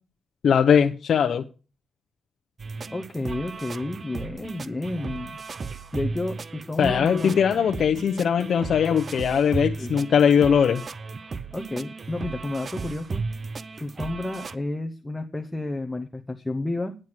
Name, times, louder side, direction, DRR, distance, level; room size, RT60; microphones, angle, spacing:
voice 1, 0.4-1.4 6.8-10.8, left 7 dB, 65° left, 0.8 m, -20 dB
sound 1, 2.6-14.6, right 4 dB, 40° right, 0.6 m, -35 dB
voice 2, 2.9-5.4 5.9-7.4 9.8-9.9 11.5-13.2 13.8-17.0, left 2 dB, 10° left, 0.9 m, -31 dB
9.5 x 9.1 x 6.0 m
cardioid pair, 115°, 0 cm